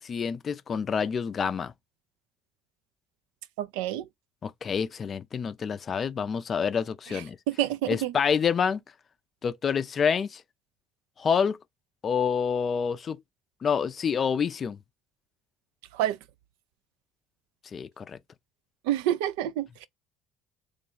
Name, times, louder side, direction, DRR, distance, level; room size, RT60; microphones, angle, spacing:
voice 1, 0.0-1.7 4.4-7.4 7.9-8.8 9.4-10.4 11.2-11.6 12.0-13.2 13.6-14.8 17.7-18.2, left 6 dB, 40° left, 0.4 m, -27 dB
voice 2, 3.6-4.1 7.1-8.1 15.9-16.2 18.8-19.8, right 12 dB, 70° right, 0.3 m, -28 dB
3.2 x 2.3 x 4.0 m
figure-of-eight pair, 55°, 0 cm